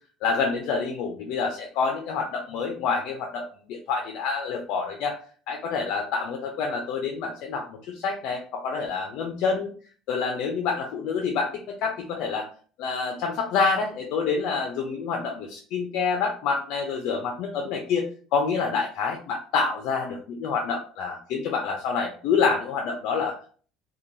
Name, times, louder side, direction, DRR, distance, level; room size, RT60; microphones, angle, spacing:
voice 1, 0.2-5.1 5.5-9.7 10.1-11.5 11.8-12.5 12.8-23.5, left 5 dB, 55° left, 2 dB, 0.4 m, -27 dB
3.0 x 2.1 x 2.6 m, 0.43 s
cardioid pair, 175°, 0 cm